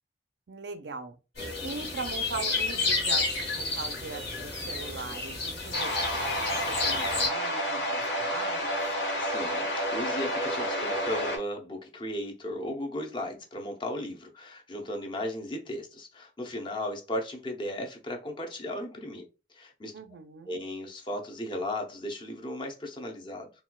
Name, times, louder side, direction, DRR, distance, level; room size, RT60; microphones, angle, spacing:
voice 1, 0.5-1.2 1.6-8.8 19.9-20.6, right 4 dB, 70° right, 0.5 m, -40 dB
sound 1, 1.4-7.3, left 3 dB, 65° left, 1.6 m, -31 dB
voice 2, 1.4-1.8 9.2-19.2 19.5-19.9 20.5-23.5, left 1 dB, 25° left, 0.6 m, -36 dB
sound 2, 5.7-11.4, equal, 80° left, 1.2 m, -30 dB
4.1 x 2.3 x 2.3 m
head